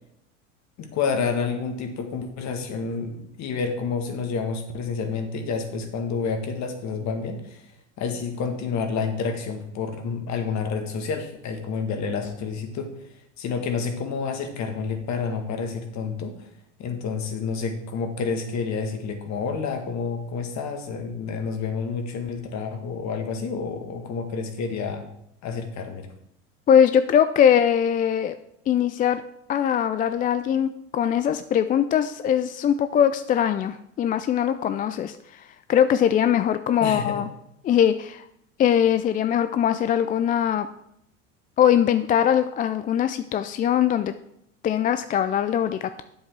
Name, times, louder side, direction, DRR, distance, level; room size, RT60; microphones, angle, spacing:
voice 1, 0.8-7.7 8.0-13.1 13.4-16.5 16.8-25.0 25.4-26.1 36.8-37.2, left 5 dB, 45° left, 6 dB, 1.8 m, -29 dB
voice 2, 26.7-28.3 28.7-29.2 29.5-35.4 35.7-37.3 37.6-38.2 38.6-40.7 41.6-44.1 44.6-46.0, left 9 dB, 25° left, 11 dB, 0.3 m, -21 dB
8.2 x 7.5 x 4.7 m, 0.76 s
hypercardioid pair, 85°, 37 cm